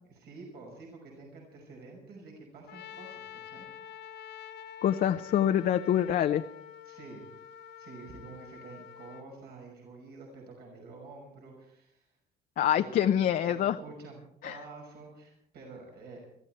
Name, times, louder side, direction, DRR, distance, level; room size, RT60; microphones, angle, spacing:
voice 1, 0.1-3.7 6.8-7.2 7.8-12.1 13.5-16.2, right 3 dB, 70° right, 0 dB, 5.8 m, -48 dB
Trumpet, 2.7-9.3, left 10 dB, 80° left, 1.3 m, -47 dB
voice 2, 4.8-6.4 12.6-13.8 14.4-14.6, left 10 dB, 55° left, 7 dB, 0.8 m, -26 dB
22.5 x 14.5 x 4.4 m, 0.74 s
cardioid pair, 110°, 17 cm